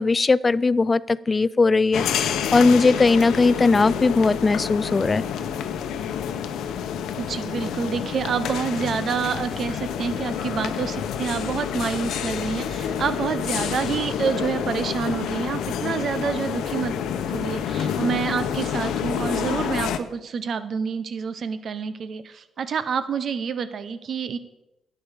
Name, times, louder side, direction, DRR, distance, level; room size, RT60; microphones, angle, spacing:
voice 1, 0.0-5.2, left 3 dB, 25° left, 21 dB, 0.4 m, -19 dB
sound 1, 1.9-20.0, left 8 dB, 80° left, 0.9 m, -28 dB
voice 2, 7.2-16.9 17.3-24.4, right 6 dB, 55° right, 12 dB, 1.0 m, -28 dB
11.5 x 8.6 x 5.3 m, 0.93 s
cardioid pair, 90°, 0 cm